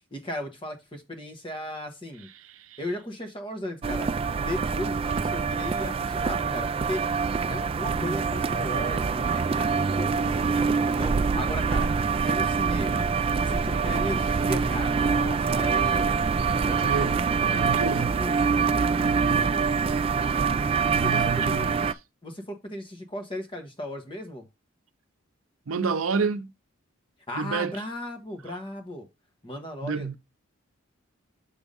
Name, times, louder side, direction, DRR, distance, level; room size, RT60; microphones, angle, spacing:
voice 1, 0.1-2.3 2.8-4.1 4.4-7.0 7.5-13.1 13.4-16.1 16.6-19.7 20.9-21.7 22.2-24.4 27.3-29.1 29.4-30.1, left 1 dB, 25° left, 1.4 m, -36 dB
sound 1, 3.8-21.9, right 5 dB, 30° right, 0.3 m, -25 dB
voice 2, 16.8-18.1 19.0-19.5 20.9-21.8 25.7-26.5 27.3-27.7 29.8-30.2, right 5 dB, 85° right, 0.6 m, -29 dB
6.8 x 3.6 x 5.3 m
head